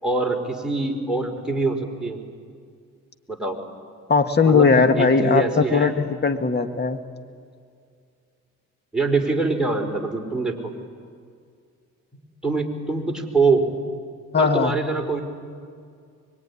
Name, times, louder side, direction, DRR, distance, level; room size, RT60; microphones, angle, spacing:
voice 1, 0.0-2.2 3.3-3.6 4.4-5.9 8.9-10.7 12.4-13.7 14.4-15.2, right 3 dB, ahead, 0 dB, 4.6 m, -24 dB
voice 2, 4.1-7.0 14.3-14.7, left 5 dB, 35° left, 7 dB, 1.9 m, -19 dB
24.5 x 22.5 x 9.9 m, 2.2 s
cardioid pair, 90°, 30 cm